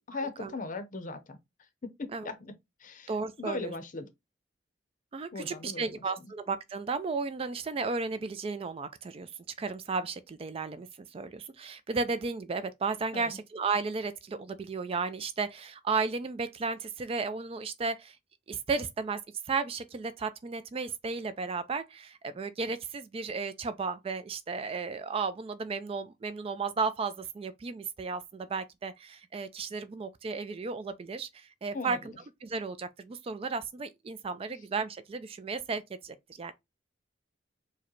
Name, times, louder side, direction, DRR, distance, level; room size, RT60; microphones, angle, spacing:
voice 1, 0.1-1.4 1.8-2.5 2.8-3.1 3.4-4.1 5.3-6.3 13.1-13.4 31.7-32.1, left 3 dB, 45° left, 0.6 m, -39 dB
voice 2, 3.1-3.7 5.1-9.3 9.6-18.2 18.5-19.2 19.5-32.0 32.4-36.5, right 4 dB, 30° right, 0.3 m, -34 dB
4.7 x 2.1 x 3.0 m
head